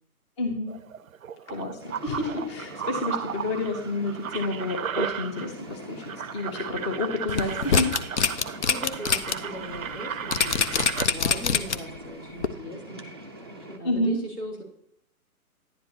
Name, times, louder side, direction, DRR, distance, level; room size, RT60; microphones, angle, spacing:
voice 1, 0.4-0.8 1.5-7.9 8.2-8.4 13.8-14.2, left 2 dB, 20° left, 4 dB, 0.8 m, -30 dB
sound 1, 0.7-5.7 6.0-11.1, right 8 dB, 65° right, 0.6 m, -35 dB
sound 2, 1.8-13.8, right 1 dB, 20° right, 0.4 m, -43 dB
sound 3, 7.3-9.3 9.7-9.8 10.3-12.0 12.4-12.5, left 6 dB, 50° left, 0.7 m, -24 dB
voice 2, 8.7-13.1 13.4-14.6, equal, 80° left, -1 dB, 3.6 m, -39 dB
10.5 x 10.0 x 2.8 m, 0.72 s
figure-of-eight pair, 135°, 44 cm